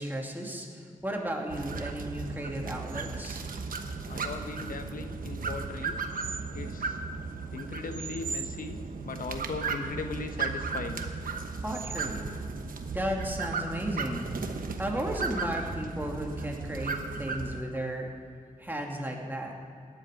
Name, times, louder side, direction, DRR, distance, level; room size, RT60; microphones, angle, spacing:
voice 1, 0.0-3.4 11.6-12.3 12.9-14.3 14.8-18.1 18.6-19.5, equal, 15° right, 0 dB, 2.5 m, -34 dB
sound 1, 1.5-17.6, right 4 dB, 80° right, 1.0 m, -35 dB
voice 2, 4.1-6.0 6.5-7.0 7.5-11.1, left 4 dB, 80° left, 7 dB, 1.0 m, -38 dB
17.5 x 11.0 x 5.2 m, 2.5 s
wide cardioid pair, 75°, 14 cm